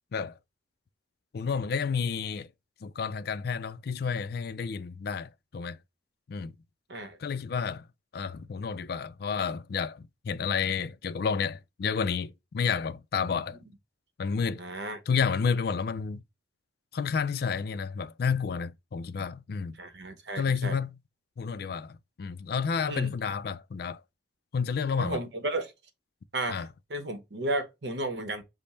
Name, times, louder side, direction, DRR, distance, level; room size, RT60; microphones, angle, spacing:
voice 1, 1.3-2.5 2.8-5.8 6.3-6.5 7.2-7.9 8.1-13.6 14.2-14.6 15.1-16.2 16.9-19.8 20.4-21.0 21.4-24.0 24.5-25.2 26.5-26.7, left 6 dB, 55° left, 0.4 m, -30 dB
voice 2, 14.6-15.0 19.7-20.8 22.9-23.1 25.0-25.7 26.3-28.4, right 2 dB, 65° right, 0.9 m, -33 dB
5.2 x 2.1 x 4.1 m
head